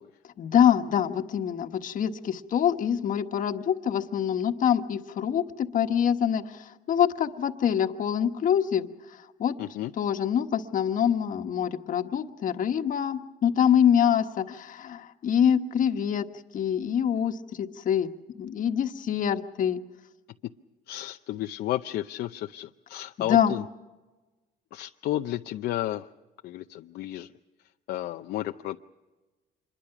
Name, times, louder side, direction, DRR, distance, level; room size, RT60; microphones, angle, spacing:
voice 1, 0.4-8.9 9.4-9.6 10.0-16.3 16.5-19.8 23.2-23.5, left 9 dB, 50° left, 7 dB, 1.4 m, -25 dB
voice 2, 9.6-9.9 20.9-23.6 24.7-26.1 26.4-27.3 27.9-28.8, left 14 dB, 70° left, 6 dB, 0.6 m, -32 dB
26.5 x 22.0 x 5.9 m, 1.2 s
cardioid pair, 110°, 17 cm